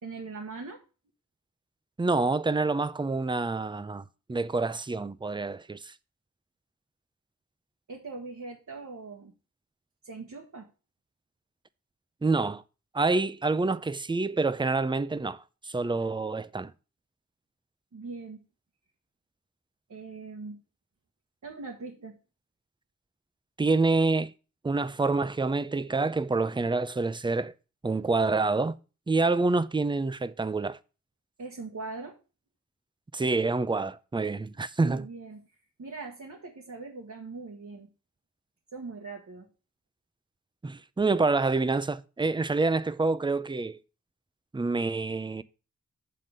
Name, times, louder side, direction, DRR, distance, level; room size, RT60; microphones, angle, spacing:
voice 1, 0.0-0.8 7.9-9.3 10.0-10.7 17.9-18.4 19.9-20.6 21.4-22.2 31.4-32.2 34.8-35.4 35.8-37.9 38.7-39.5, right 3 dB, 65° right, 1.2 m, -41 dB
voice 2, 2.0-5.9 12.2-12.6 12.9-16.7 23.6-24.3 24.6-27.5 27.8-28.8 29.1-30.8 33.1-35.1 40.6-43.8 44.5-45.4, right 3 dB, 15° right, 0.5 m, -27 dB
7.4 x 3.8 x 6.5 m
cardioid pair, 50°, 31 cm